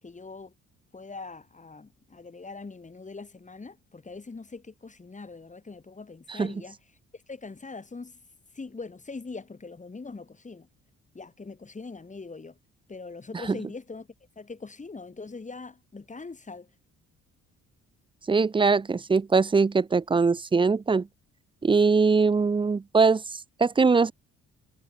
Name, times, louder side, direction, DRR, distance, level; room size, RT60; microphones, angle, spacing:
voice 1, 0.0-0.5 0.9-6.8 7.1-8.2 8.5-10.7 11.1-12.6 12.9-14.1 14.4-16.7, left 4 dB, 25° left, 4.4 m, -42 dB
voice 2, 18.3-21.1 21.6-24.1, right 4 dB, 15° right, 0.5 m, -22 dB
cardioid pair, 90°, 30 cm